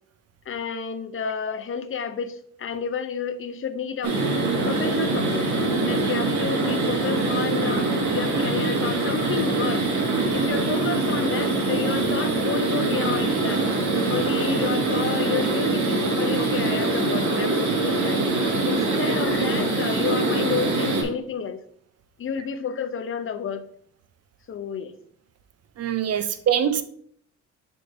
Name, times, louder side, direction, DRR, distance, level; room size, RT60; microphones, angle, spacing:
voice 1, 0.5-4.2 4.6-5.5 5.8-9.8 10.3-13.8 14.1-18.2 18.6-21.6 22.2-23.7 24.5-24.9 26.2-26.3, left 7 dB, 45° left, 0.6 m, -31 dB
sound 1, 4.0-21.0, right 3 dB, 75° right, 1.6 m, -23 dB
voice 2, 25.8-26.8, right 9 dB, 55° right, 0.6 m, -24 dB
10.5 x 3.7 x 2.6 m
cardioid pair, 90°, 30 cm